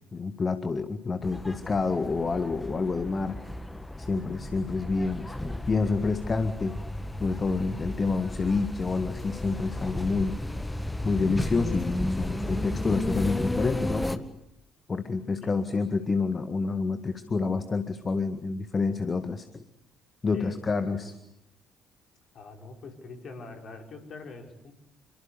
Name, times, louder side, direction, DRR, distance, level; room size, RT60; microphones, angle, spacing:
voice 1, 0.1-3.4 4.0-6.8 7.2-10.4 11.0-14.2 14.9-19.6 20.2-21.1, left 4 dB, 30° left, 10 dB, 1.9 m, -28 dB
sound 1, 1.2-14.2, left 1 dB, 10° left, 1.9 m, -33 dB
voice 2, 15.4-15.8 20.3-21.1 22.3-24.7, left 3 dB, 45° left, 4 dB, 5.5 m, -44 dB
28.0 x 24.0 x 8.2 m, 0.78 s
figure-of-eight pair, 50°, 0 cm